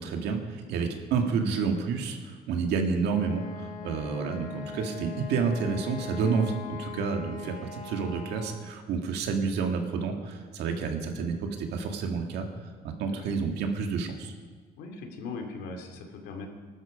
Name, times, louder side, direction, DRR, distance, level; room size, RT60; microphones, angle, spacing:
voice 1, 0.0-12.5 12.8-14.3, right 5 dB, 80° right, 4 dB, 2.1 m, -29 dB
Wind instrument woodwind instrument, 3.0-8.7, left 6 dB, 50° left, 2.4 m, -41 dB
voice 2, 13.1-13.4 14.8-16.5, left 4 dB, 85° left, 3 dB, 2.6 m, -39 dB
20.0 x 12.5 x 5.0 m, 1.5 s
cardioid pair, 110°, 17 cm